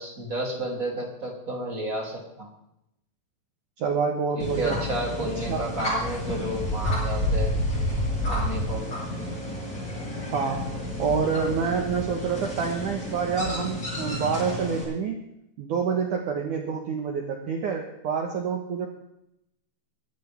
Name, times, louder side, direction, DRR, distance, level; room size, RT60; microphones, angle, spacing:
voice 1, 0.0-2.5 4.3-7.5 8.3-8.8, right 1 dB, 20° right, -1 dB, 2.5 m, -31 dB
voice 2, 3.8-4.8 5.4-5.7 10.3-15.2 15.6-18.9, right 6 dB, 80° right, 2 dB, 1.8 m, -27 dB
sound 1, 4.4-14.8, left 1 dB, 15° left, 7.1 m, -30 dB
23.0 x 12.0 x 3.6 m, 0.81 s
omnidirectional pair, 5.8 m